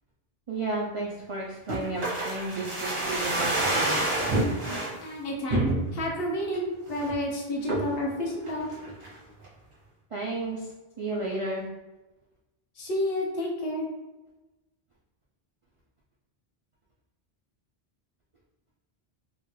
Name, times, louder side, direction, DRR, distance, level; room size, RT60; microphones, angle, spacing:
voice 1, 0.5-4.0 10.1-10.7 11.0-11.6, right 2 dB, 60° right, -4 dB, 0.3 m, -32 dB
sound 1, 1.7-4.9 5.5-6.1 6.5-6.6 6.9-7.2 7.7-8.0 8.5-9.2 9.4-9.5, right 2 dB, 80° right, 1.6 m, -28 dB
voice 2, 5.0-8.7 12.8-13.9, left 1 dB, 65° left, -2 dB, 1.0 m, -30 dB
3.7 x 2.2 x 3.1 m, 1.1 s
omnidirectional pair, 1.1 m